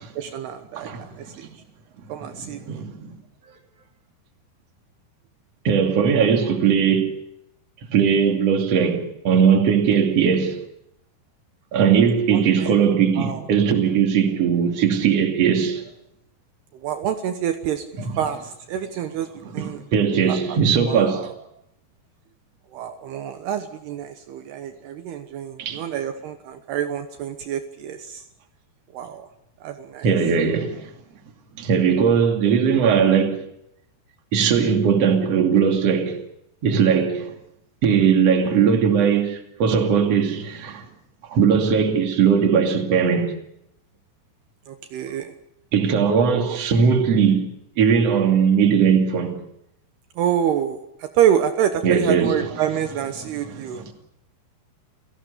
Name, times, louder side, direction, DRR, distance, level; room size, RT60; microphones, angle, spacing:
voice 1, 0.2-1.5 2.1-2.8 12.3-12.8 13.2-13.4 16.7-17.9 18.2-19.3 19.5-19.8 20.3-20.6 20.9-21.3 22.7-28.2 28.9-29.3 29.6-30.1 44.7-45.3 46.3-46.6 50.2-53.8, right 9 dB, 70° right, 3.0 m, -27 dB
voice 2, 0.7-1.3 2.2-3.1 5.6-7.2 7.9-10.6 11.7-15.8 18.0-18.2 19.5-21.3 25.6-25.8 30.0-30.9 31.6-33.4 34.3-36.2 36.6-37.3 37.8-40.9 41.3-43.4 45.7-47.4 47.8-49.4 51.8-52.4 53.5-53.9, right 7 dB, 40° right, 3.0 m, -19 dB
29.0 x 17.5 x 6.8 m
omnidirectional pair, 5.0 m